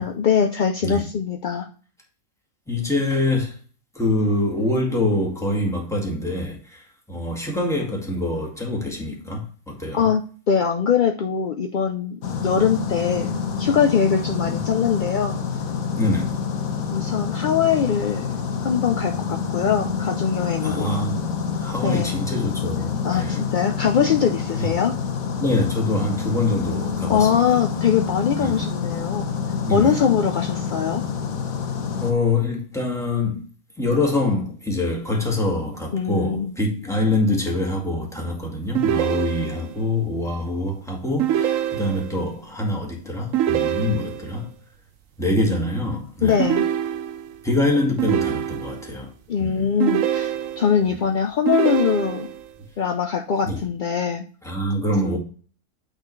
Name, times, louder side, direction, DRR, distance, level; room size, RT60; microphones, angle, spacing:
voice 1, 0.0-1.7 9.9-10.2 10.5-15.4 16.9-21.0 21.8-22.2 23.0-25.0 27.1-29.3 29.7-31.1 35.9-36.5 46.2-46.6 49.3-52.3 52.8-54.2, left 7 dB, 60° left, 0.5 m, -22 dB
voice 2, 2.7-3.6 3.9-10.1 14.5-14.7 16.0-16.4 20.6-21.2 21.6-23.5 24.6-24.7 25.4-27.6 28.4-28.6 29.7-30.0 32.0-33.4 33.8-44.5 45.2-46.5 47.4-49.1 49.4-49.7 53.4-53.6 54.4-55.2, left 2 dB, ahead, 1.7 m, -25 dB
sound 1, 12.2-32.1, left 6 dB, 75° left, 1.3 m, -27 dB
sound 2, 38.7-39.8 41.2-42.3 43.3-44.4 46.4-47.4 48.0-49.0 49.8-50.8 51.5-52.5, right 10 dB, 70° right, 1.0 m, -24 dB
8.9 x 4.1 x 3.1 m
omnidirectional pair, 1.5 m